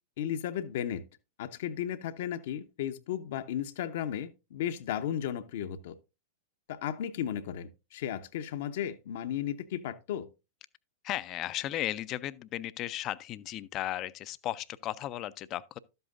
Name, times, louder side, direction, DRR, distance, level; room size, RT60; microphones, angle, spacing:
voice 1, 0.2-1.0 1.4-5.9 6.7-10.3, left 10 dB, 60° left, 0.9 m, -35 dB
voice 2, 11.0-15.8, left 14 dB, 40° left, 0.5 m, -35 dB
12.5 x 7.9 x 2.5 m
figure-of-eight pair, 100°, 0 cm